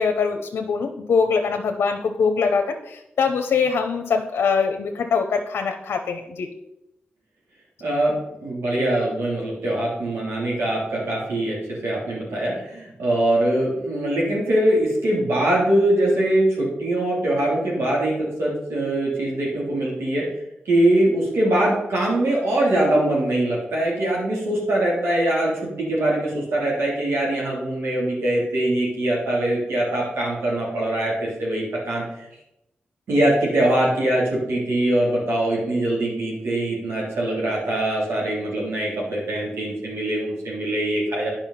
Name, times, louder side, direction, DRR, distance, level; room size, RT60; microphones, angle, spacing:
voice 1, 0.0-6.5, left 5 dB, 80° left, 5 dB, 0.7 m, -23 dB
voice 2, 7.8-8.1 8.4-11.5 11.8-20.3 20.6-32.0 33.1-41.3, right 1 dB, 85° right, -4 dB, 3.3 m, -22 dB
9.0 x 5.5 x 5.8 m, 0.88 s
cardioid pair, 55°, 4 cm